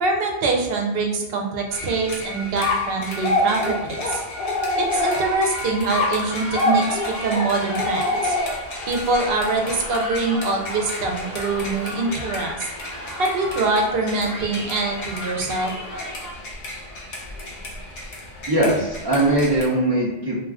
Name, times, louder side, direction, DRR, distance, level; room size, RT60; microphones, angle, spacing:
voice 1, 0.0-4.2 4.9-8.4 8.9-12.6 13.2-15.7, right 3 dB, 70° right, 2 dB, 0.7 m, -24 dB
sound 1, 1.7-19.7, left 1 dB, 80° left, 1.0 m, -35 dB
sound 2, 2.6-5.5 5.9-8.8, left 2 dB, 60° left, 0.8 m, -24 dB
sound 3, 4.9-16.3, left 1 dB, 20° left, 0.6 m, -35 dB
voice 2, 18.5-20.4, right 1 dB, 35° right, -8 dB, 0.4 m, -20 dB
2.3 x 2.3 x 3.4 m, 1.0 s
omnidirectional pair, 1.1 m